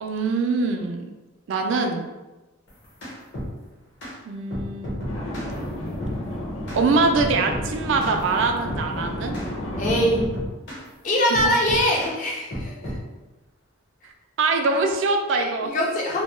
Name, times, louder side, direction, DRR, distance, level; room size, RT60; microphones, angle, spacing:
voice 1, 0.0-1.0 1.5-2.1 4.3-5.0 6.7-9.4 11.3-11.5 14.4-15.7, right 3 dB, 65° right, 4 dB, 0.3 m, -23 dB
sound 1, 2.7-3.5 4.0-4.1 4.5-5.5 6.0-6.2 6.7-6.8 7.2-7.7 8.0-8.2 8.7-8.9 9.3-9.5 9.8-10.9 11.3-12.2 12.5-13.0, equal, 55° left, 0.9 m, -32 dB
sound 2, 5.1-10.2, left 1 dB, 85° left, 0.7 m, -31 dB
voice 2, 9.8-10.3 11.0-12.9 15.3-16.2, equal, 40° left, -2 dB, 0.4 m, -23 dB
2.2 x 2.1 x 3.0 m, 1.1 s
head